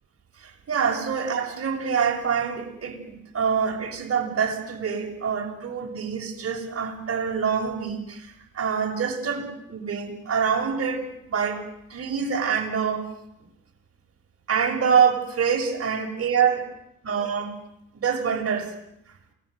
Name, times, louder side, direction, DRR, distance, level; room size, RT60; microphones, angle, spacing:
voice 1, 0.4-11.6 11.9-13.1 14.5-16.7 17.0-17.6 17.9-18.7, right 6 dB, 50° right, 6.5 m, -26 dB
28.5 x 20.0 x 8.0 m
cardioid pair, 90°, 30 cm